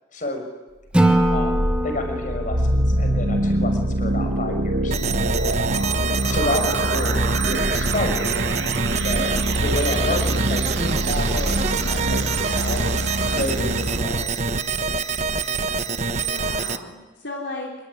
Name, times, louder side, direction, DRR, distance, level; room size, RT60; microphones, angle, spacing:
voice 1, 0.1-0.4 1.3-5.0 6.2-8.5 8.9-12.9 13.2-14.5, left 1 dB, 45° left, 5 dB, 6.1 m, -30 dB
Acoustic guitar / Strum, 0.9-4.1, right 1 dB, 5° right, 2.5 m, -23 dB
sound 1, 1.0-14.2, right 1 dB, 80° right, 2.3 m, -24 dB
sound 2, 4.9-16.8, right 4 dB, 40° right, 1.2 m, -26 dB
voice 2, 6.6-7.2 16.2-17.7, left 2 dB, 70° left, -1 dB, 4.2 m, -36 dB
27.5 x 23.0 x 9.6 m, 1.1 s
head